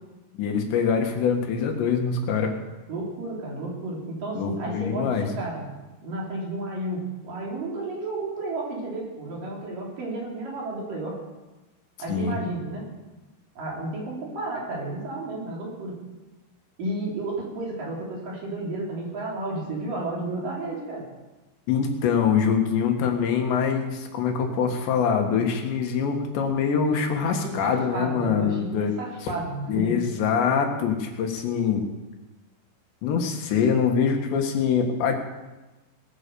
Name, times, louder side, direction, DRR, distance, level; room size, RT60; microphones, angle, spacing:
voice 1, 0.4-2.5 4.4-5.3 12.1-12.4 21.7-29.0 29.7-31.9 33.0-35.1, left 6 dB, 80° left, 3 dB, 3.9 m, -24 dB
voice 2, 2.9-5.7 6.0-11.2 12.0-12.9 13.6-16.0 16.8-21.1 27.3-30.0, right 2 dB, 50° right, -3 dB, 5.1 m, -32 dB
19.0 x 10.0 x 6.9 m, 1.1 s
omnidirectional pair, 5.0 m